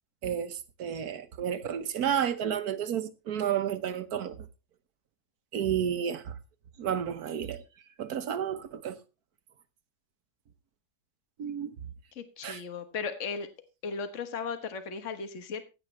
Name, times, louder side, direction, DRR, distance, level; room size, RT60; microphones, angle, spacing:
voice 1, 0.2-4.4 5.5-6.4 6.8-7.6 8.0-9.0 11.4-11.7 12.4-12.6, right 9 dB, 70° right, 1.4 m, -31 dB
voice 2, 12.1-13.5 13.8-15.7, left 5 dB, 50° left, 1.6 m, -36 dB
15.5 x 9.0 x 3.3 m
omnidirectional pair, 1.7 m